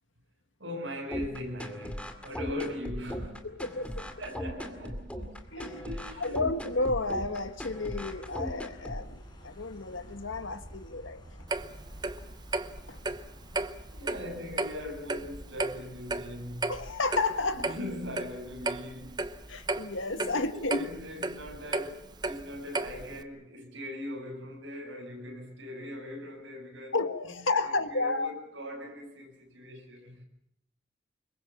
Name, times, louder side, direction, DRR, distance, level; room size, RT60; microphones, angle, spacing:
voice 1, 0.6-3.5 4.0-6.5 13.9-16.7 17.5-19.3 20.1-27.0 27.2-30.2, left 1 dB, 75° right, 7.5 m, -40 dB
sound 1, 1.1-9.1, equal, 5° left, 2.3 m, -38 dB
voice 2, 3.4-4.1 5.5-5.8 6.2-11.2 12.9-13.0 16.7-17.8 19.5-20.9 26.9-28.3, left 3 dB, 85° left, 1.7 m, -32 dB
sound 2, 3.6-19.9, equal, 20° left, 6.8 m, -51 dB
Clock, 11.5-23.2, right 2 dB, 20° right, 0.9 m, -35 dB
25.5 x 22.5 x 7.3 m
head